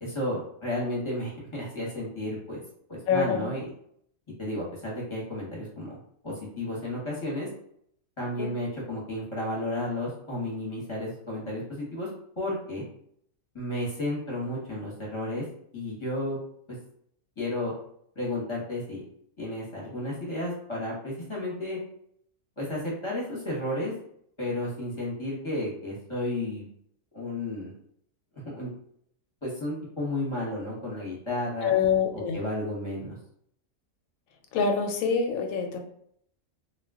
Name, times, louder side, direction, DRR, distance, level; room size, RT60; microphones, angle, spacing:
voice 1, 0.0-2.6 2.9-3.6 4.4-6.0 6.2-7.5 8.2-12.1 12.4-12.8 13.5-15.4 15.7-16.4 17.4-17.7 18.1-19.0 19.4-21.8 22.6-23.9 24.4-26.7 27.1-27.7 28.5-28.7 29.4-31.7 32.1-33.2, left 1 dB, 25° left, -5 dB, 0.8 m, -32 dB
voice 2, 3.1-3.5 8.4-8.5 31.6-32.4 34.5-35.8, left 6 dB, 85° left, 4 dB, 1.0 m, -25 dB
2.3 x 2.3 x 3.4 m, 0.68 s
omnidirectional pair, 1.4 m